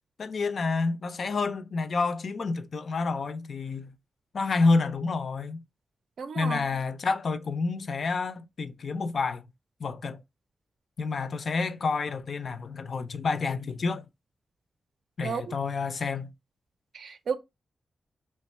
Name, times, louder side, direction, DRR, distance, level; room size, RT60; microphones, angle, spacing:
voice 1, 0.2-4.0 4.3-5.6 6.4-9.4 9.8-10.2 11.0-14.1 15.2-16.3, left 4 dB, 60° left, 0.4 m, -29 dB
voice 2, 6.2-6.6 15.2-15.5 16.9-17.4, right 6 dB, 80° right, 0.5 m, -32 dB
3.0 x 2.2 x 4.2 m
wide cardioid pair, 125°, 0 cm